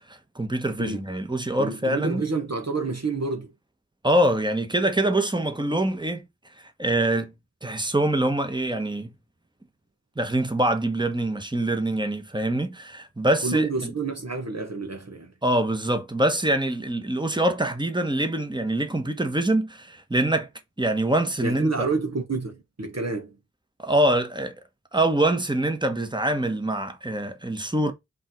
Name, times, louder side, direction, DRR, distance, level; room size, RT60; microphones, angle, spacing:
voice 1, 0.1-2.2 4.0-6.3 6.8-7.3 7.6-9.1 10.2-13.9 15.4-20.5 20.8-21.9 23.8-24.5 24.9-27.9, right 1 dB, 15° right, 1.2 m, -24 dB
voice 2, 1.6-3.5 13.4-15.3 21.4-23.3, right 3 dB, 50° right, 1.3 m, -28 dB
5.3 x 3.9 x 4.6 m
wide cardioid pair, 50°, 32 cm